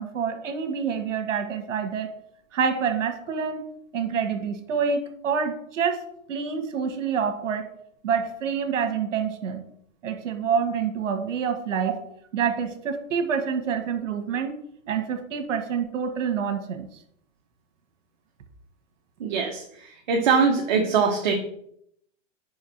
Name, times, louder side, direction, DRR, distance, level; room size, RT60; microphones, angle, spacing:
voice 1, 0.0-2.1 2.5-3.6 3.9-6.0 6.3-7.7 8.0-9.7 10.0-12.0 12.3-14.6 14.9-16.9, right 6 dB, 70° right, 7 dB, 1.4 m, -27 dB
voice 2, 19.2-19.6 20.1-21.3, right 5 dB, 35° right, 1 dB, 0.7 m, -22 dB
5.2 x 4.7 x 5.7 m, 0.71 s
hypercardioid pair, 170°, 38 cm